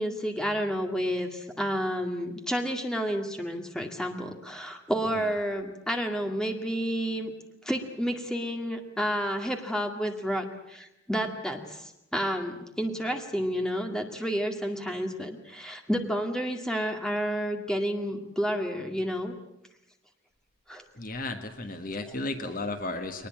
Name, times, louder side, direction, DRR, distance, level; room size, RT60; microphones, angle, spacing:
voice 1, 0.0-7.3 7.6-19.3 20.7-20.8, equal, 5° left, 3 dB, 2.1 m, -30 dB
voice 2, 21.0-23.3, left 2 dB, 45° left, 7 dB, 1.6 m, -34 dB
22.0 x 20.0 x 8.9 m, 0.84 s
head